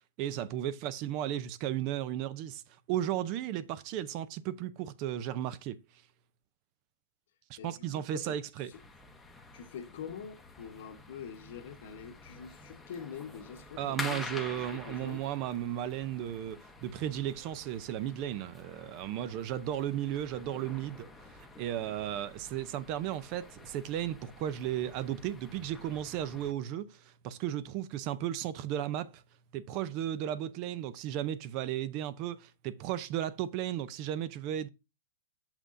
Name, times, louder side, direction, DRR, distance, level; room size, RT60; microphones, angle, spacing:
voice 1, 0.2-2.6 2.9-5.8 7.5-8.7 13.8-29.2 29.5-34.7, right 11 dB, 35° right, 0.5 m, -35 dB
voice 2, 7.6-8.4 8.7-8.8 9.5-15.3, left 7 dB, 60° left, 1.0 m, -45 dB
sound 1, 8.7-26.5, left 3 dB, 5° left, 0.8 m, -48 dB
6.7 x 5.7 x 2.5 m
hypercardioid pair, 145°, 0 cm